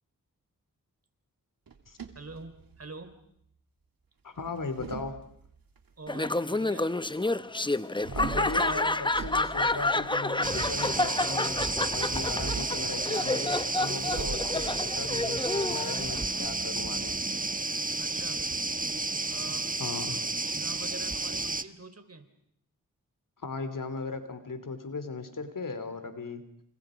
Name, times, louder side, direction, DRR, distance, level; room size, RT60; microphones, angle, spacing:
sound 1, 1.7-3.1 4.4-5.8 8.0-10.6 12.2-12.9 14.1-16.4, right 5 dB, 80° right, 2.9 m, -41 dB
voice 1, 2.1-3.2 6.0-7.0 18.0-18.4 19.3-19.8 20.4-22.3, right 3 dB, 45° right, 8 dB, 4.7 m, -45 dB
voice 2, 4.2-5.1 8.1-17.2 19.8-20.2 23.4-26.4, left 4 dB, 65° left, 10 dB, 3.3 m, -37 dB
Laughter, 6.1-16.5, left 2 dB, 15° left, 0.9 m, -29 dB
sound 2, 10.4-21.6, right 3 dB, 25° right, 1.3 m, -32 dB
29.5 x 28.0 x 5.2 m, 0.71 s
cardioid pair, 50°, 35 cm